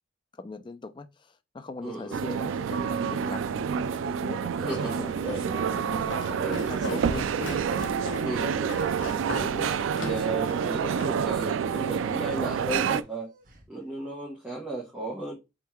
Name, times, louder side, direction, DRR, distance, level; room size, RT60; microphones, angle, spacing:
voice 1, 0.3-5.1 5.8-7.6, left 3 dB, 25° left, 0.3 m, -40 dB
voice 2, 1.8-2.2 4.6-5.7 6.4-6.9 8.2-8.8 9.4-13.3 13.7-15.3, right 2 dB, 5° right, 0.9 m, -35 dB
sound 1, 2.1-13.0, right 7 dB, 75° right, 0.3 m, -28 dB
sound 2, 3.5-4.1 4.8-5.2 6.0-6.8 7.6-8.0 8.8-9.2 10.3-10.9 11.6-12.2 12.9-13.7, right 2 dB, 45° right, 1.2 m, -49 dB
Walk footsteps, 4.7-11.2, left 3 dB, 70° left, 1.1 m, -39 dB
3.7 x 3.0 x 4.4 m
head